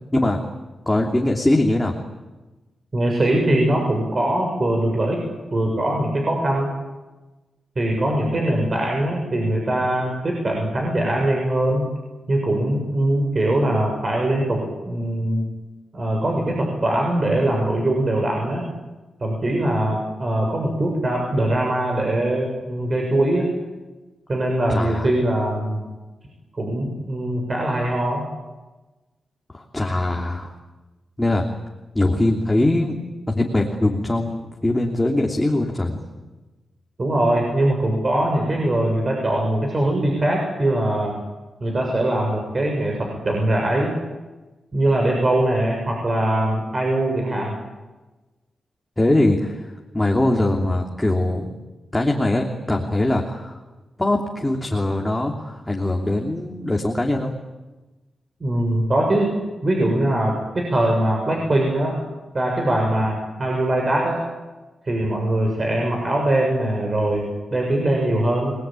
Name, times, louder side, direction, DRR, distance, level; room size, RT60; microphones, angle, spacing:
voice 1, 0.9-2.0 24.7-25.1 29.5-30.5 31.2-31.4 31.9-32.9 33.3-36.0 49.0-51.6 51.9-53.6 54.0-57.3, left 1 dB, 10° left, 1 dB, 3.1 m, -21 dB
voice 2, 2.9-5.2 5.5-6.7 7.8-11.9 12.3-15.4 15.9-18.6 19.2-23.5 24.3-25.8 26.5-28.2 37.0-41.1 41.6-43.9 44.7-47.5 58.4-59.3 59.6-62.0 62.3-64.2 64.8-68.5, right 1 dB, 35° right, 1 dB, 6.8 m, -22 dB
29.5 x 21.0 x 9.2 m, 1.2 s
cardioid pair, 100°, 0 cm